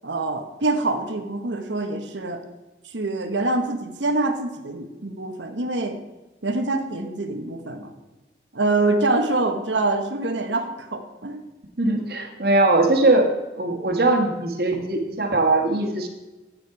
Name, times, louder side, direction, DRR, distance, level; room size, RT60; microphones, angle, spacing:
voice 1, 0.0-2.4 2.8-6.0 6.4-7.9 8.5-11.4, right 2 dB, 85° right, 5 dB, 1.1 m, -25 dB
voice 2, 11.8-13.3 13.6-16.1, right 2 dB, 55° right, 3 dB, 1.5 m, -20 dB
9.8 x 8.6 x 4.7 m, 1.1 s
head